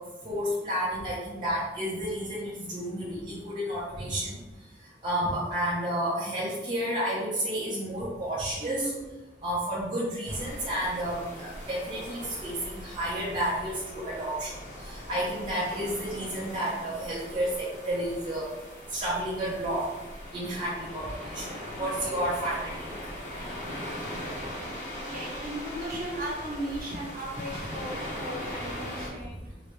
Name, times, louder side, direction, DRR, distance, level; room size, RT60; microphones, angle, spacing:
voice 1, 0.2-4.4 5.0-8.9 9.4-14.5 14.8-18.5 18.9-19.9 20.3-21.4 21.8-22.9, right 1 dB, 25° right, -8 dB, 0.6 m, -31 dB
voice 2, 8.6-9.1 21.8-22.2 25.1-29.5, right 1 dB, 50° right, -4 dB, 0.9 m, -37 dB
sound 1, 10.3-29.1, equal, 40° left, 0.9 m, -40 dB
3.6 x 2.1 x 3.0 m, 1.1 s
head